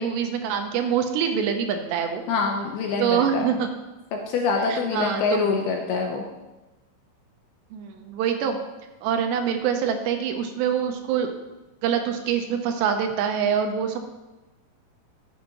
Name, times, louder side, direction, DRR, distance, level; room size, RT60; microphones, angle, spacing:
voice 1, 0.0-2.2 3.0-3.7 4.6-5.5 7.7-8.6 9.0-11.3 11.8-14.0, right 8 dB, 80° right, 5 dB, 2.8 m, -25 dB
voice 2, 2.3-3.5 4.1-6.2, left 4 dB, 75° left, 2 dB, 2.5 m, -25 dB
13.0 x 8.7 x 3.0 m, 1.1 s
omnidirectional pair, 5.1 m